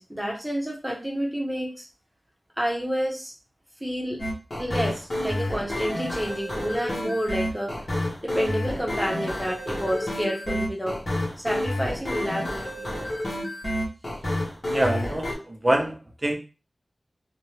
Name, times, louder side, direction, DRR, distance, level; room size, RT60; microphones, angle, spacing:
voice 1, 0.0-1.9 2.6-3.3 3.8-4.2 4.6-7.7 8.2-11.0 11.4-12.9, equal, 5° right, -2 dB, 0.9 m, -29 dB
sound 1, 4.2-15.3, left 1 dB, 55° left, 1.0 m, -29 dB
voice 2, 14.7-16.3, right 1 dB, 30° right, 3 dB, 0.5 m, -25 dB
2.7 x 2.1 x 3.1 m, 0.31 s
wide cardioid pair, 85°, 0 cm